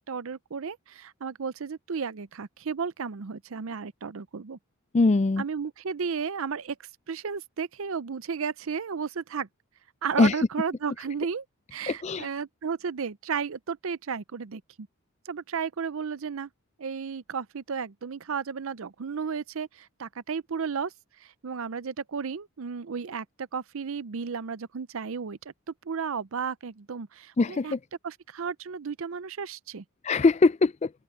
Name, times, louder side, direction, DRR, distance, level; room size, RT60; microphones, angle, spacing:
voice 1, 0.0-4.6 5.4-6.8 7.1-9.5 10.0-11.4 11.7-14.9 15.3-16.5 16.8-20.9 21.2-25.4 25.7-27.7 28.0-29.8, right 6 dB, 65° right, 0.5 m, -33 dB
voice 2, 4.9-5.4 10.2-10.3 11.9-12.3 27.4-27.8 30.0-30.9, left 3 dB, 30° left, 0.3 m, -22 dB
open air
head